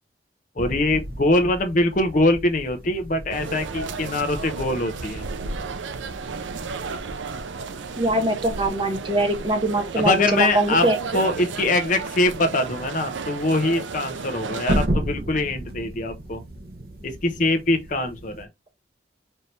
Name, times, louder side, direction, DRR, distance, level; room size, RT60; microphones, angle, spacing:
voice 1, 0.6-5.2 10.0-10.9 11.1-16.4 17.0-18.5, left 2 dB, 40° left, 0.7 m, -23 dB
sound 1, 0.6-18.4, right 1 dB, 55° right, 0.9 m, -35 dB
sound 2, 3.3-14.9, right 4 dB, 80° right, 0.5 m, -33 dB
voice 2, 8.0-11.0, right 1 dB, 25° right, 0.9 m, -22 dB
4.4 x 2.7 x 3.2 m
head